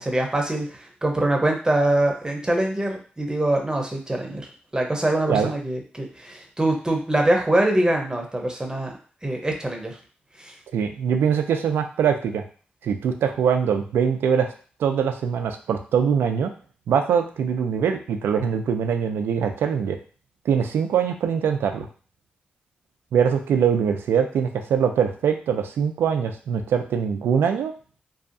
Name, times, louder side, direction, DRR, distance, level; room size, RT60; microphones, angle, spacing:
voice 1, 0.0-4.4 4.7-8.9 9.2-9.9 10.4-10.5, right 1 dB, 20° right, 1 dB, 0.8 m, -23 dB
voice 2, 10.7-12.4 12.8-14.5 14.8-16.5 16.9-20.0 20.5-21.9 23.1-27.7, right 7 dB, 85° right, 6 dB, 0.3 m, -22 dB
2.7 x 2.3 x 2.5 m, 0.40 s
cardioid pair, 50°, 4 cm